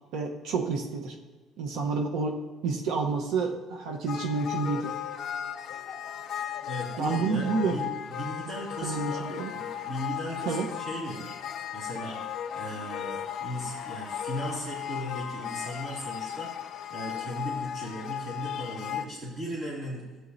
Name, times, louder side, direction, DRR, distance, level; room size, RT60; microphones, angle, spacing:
voice 1, 0.1-1.2 1.6-4.9 7.0-7.7 8.8-9.5 10.4-10.7, right 4 dB, 65° right, 3 dB, 1.0 m, -29 dB
sound 1, 4.1-19.0, left 9 dB, 45° left, 0.6 m, -36 dB
voice 2, 6.7-11.4 11.7-12.2 12.5-16.5 16.9-20.0, equal, 40° right, -8 dB, 2.6 m, -37 dB
15.0 x 9.4 x 2.7 m, 1.3 s
cardioid pair, 165°, 0 cm